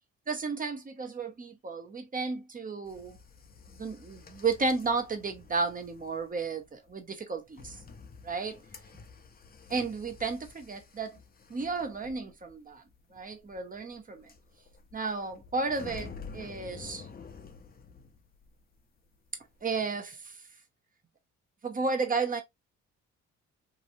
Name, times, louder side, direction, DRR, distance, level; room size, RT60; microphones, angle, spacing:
voice 1, 0.3-3.2 3.8-7.8 8.2-8.6 9.7-11.2 11.5-12.8 13.1-14.3 14.9-17.1 19.6-20.4 21.6-22.4, right 4 dB, 30° right, 0.9 m, -33 dB
sound 1, 2.9-18.8 19.0-19.8, left 5 dB, 30° left, 0.7 m, -50 dB
2.9 x 2.6 x 2.6 m
cardioid pair, 90°, 30 cm